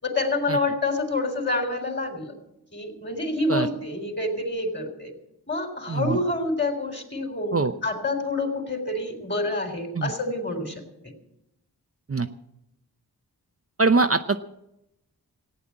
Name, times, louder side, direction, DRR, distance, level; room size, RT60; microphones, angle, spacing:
voice 1, 0.0-2.3 2.7-5.1 5.5-10.8, left 2 dB, 25° left, 5 dB, 3.7 m, -27 dB
voice 2, 5.9-6.2 7.5-7.7 9.9-10.1 12.1-12.3 13.8-14.4, right 3 dB, 35° right, 7 dB, 0.7 m, -22 dB
15.5 x 9.3 x 8.7 m, 0.86 s
wide cardioid pair, 50°, 39 cm